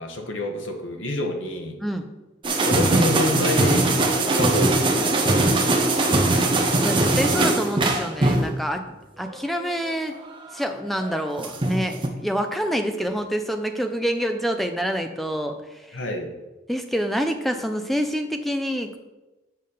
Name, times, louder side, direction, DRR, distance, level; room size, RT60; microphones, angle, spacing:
voice 1, 0.0-1.8 2.6-3.9 4.3-5.1 5.7-6.6 15.9-16.3, left 1 dB, 80° left, 3 dB, 1.4 m, -28 dB
sound 1, 2.4-8.6 9.3-9.9 10.9-12.1, right 2 dB, 25° right, 0.9 m, -21 dB
voice 2, 6.8-8.8 9.2-10.2 10.5-15.6 15.9-16.0 16.7-19.0, equal, ahead, 6 dB, 0.6 m, -27 dB
7.6 x 5.1 x 5.7 m, 1.1 s
head